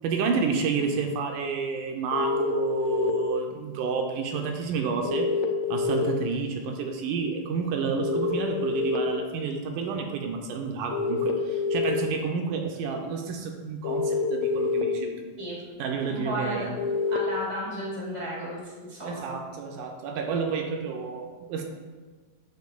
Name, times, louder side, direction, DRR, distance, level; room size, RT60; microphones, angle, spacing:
voice 1, 0.0-5.3 5.7-15.3 15.8-16.8 19.0-21.6, right 5 dB, 80° right, 2 dB, 2.0 m, -30 dB
sound 1, 2.1-3.1 5.1-6.0 8.0-9.0 10.9-11.9 13.8-14.8 16.8-17.2, left 4 dB, 80° left, 1.8 m, -26 dB
voice 2, 16.1-16.6 17.1-19.2, right 1 dB, 40° right, -6 dB, 0.4 m, -33 dB
8.1 x 6.6 x 2.3 m, 1.4 s
omnidirectional pair, 3.9 m